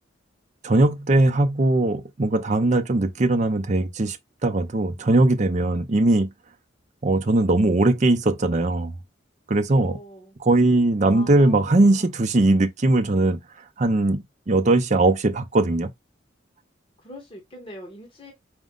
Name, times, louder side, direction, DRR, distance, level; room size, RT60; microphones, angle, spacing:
voice 1, 0.6-4.2 4.4-6.3 7.0-8.9 9.5-10.0 10.4-13.4 13.8-15.9, right 2 dB, 40° right, 0.6 m, -20 dB
voice 2, 9.7-10.4 11.1-12.1 17.0-18.3, left 1 dB, 25° left, 1.1 m, -42 dB
5.1 x 2.2 x 3.7 m
head